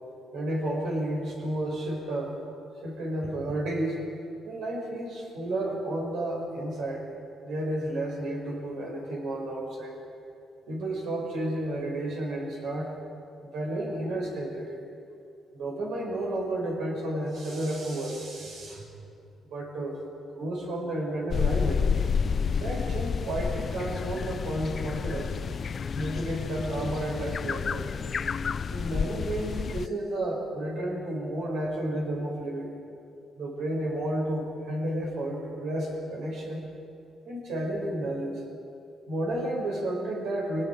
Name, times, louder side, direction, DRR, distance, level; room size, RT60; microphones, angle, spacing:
voice 1, 0.3-2.4 2.8-4.0 4.4-7.1 7.4-10.0 10.7-13.0 13.4-14.8 15.5-18.9 19.5-20.0 20.3-21.8 22.5-25.4 25.9-27.9 28.7-32.7 33.4-36.6 37.2-38.4 39.1-40.7, right 1 dB, 80° right, -2 dB, 6.5 m, -31 dB
sound 1, 21.3-29.9, left 6 dB, 45° left, 0.4 m, -30 dB
28.5 x 19.0 x 5.1 m, 2.5 s
cardioid pair, 90°, 0 cm